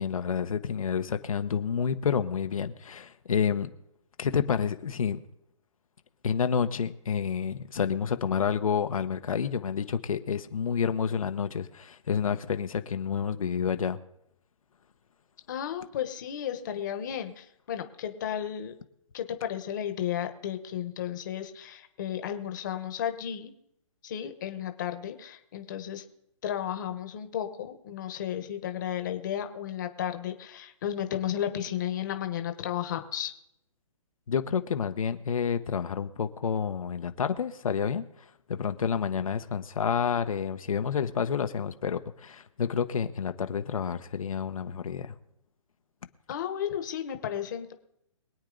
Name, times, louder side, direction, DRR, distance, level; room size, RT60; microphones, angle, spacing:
voice 1, 0.0-3.7 4.2-5.2 6.2-14.0 34.3-38.1 38.5-45.1, left 7 dB, 85° left, 8 dB, 1.0 m, -29 dB
voice 2, 15.5-18.7 19.1-23.5 24.0-26.0 26.4-33.3 46.3-47.7, left 10 dB, 35° left, 7 dB, 1.1 m, -33 dB
23.5 x 8.9 x 3.9 m, 0.80 s
hypercardioid pair, 170°, 17 cm